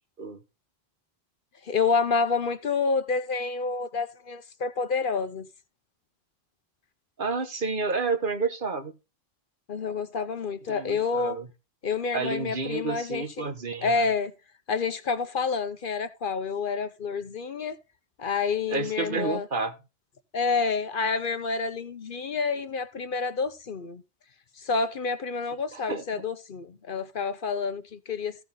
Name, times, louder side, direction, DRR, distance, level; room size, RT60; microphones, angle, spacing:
voice 1, 1.6-5.5 9.7-11.4 11.8-13.5 13.8-14.3 14.7-17.8 18.2-19.5 20.3-24.0 24.6-28.4, left 5 dB, 60° left, 1.0 m, -28 dB
voice 2, 7.2-9.0 10.7-11.5 12.1-14.0 18.7-19.7 25.7-26.0, right 4 dB, 55° right, 1.5 m, -30 dB
15.0 x 6.4 x 3.8 m
omnidirectional pair, 1.0 m